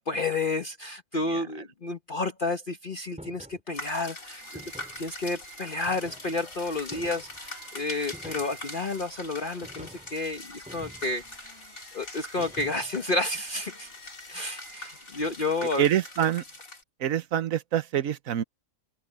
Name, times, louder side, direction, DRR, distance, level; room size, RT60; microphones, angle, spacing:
voice 1, 0.1-4.4 5.0-11.2 11.9-13.9 14.3-15.8, left 2 dB, 40° left, 1.3 m, -31 dB
sound 1, 3.2-3.6 4.5-5.1 5.9-6.4 6.9-7.4 8.1-8.7 9.6-10.1 10.7-11.3 12.4-13.0, equal, 5° right, 7.6 m, -47 dB
sound 2, 3.7-16.8, left 2 dB, 80° left, 5.0 m, -43 dB
sound 3, 4.3-15.4, right 4 dB, 55° right, 7.4 m, -51 dB
voice 2, 15.6-16.4 17.0-18.4, right 10 dB, 75° right, 1.3 m, -26 dB
open air
omnidirectional pair, 1.4 m